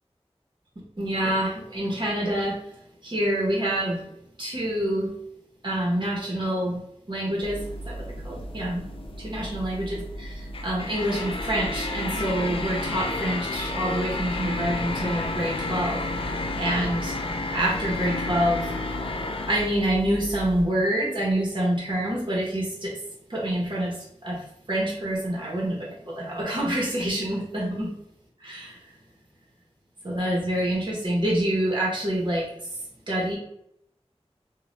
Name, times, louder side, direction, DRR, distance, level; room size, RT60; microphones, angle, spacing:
voice 1, 1.0-2.6 3.0-4.1 4.4-5.1 5.6-6.8 7.1-8.8 9.2-17.2 17.5-18.7 19.5-23.0 23.3-27.9 28.4-28.9 30.0-33.4, right 1 dB, 45° right, -4 dB, 0.9 m, -27 dB
ofiice construction, 7.4-20.6, left 2 dB, 55° left, 0.3 m, -31 dB
2.6 x 2.2 x 3.2 m, 0.75 s
wide cardioid pair, 55°, 11 cm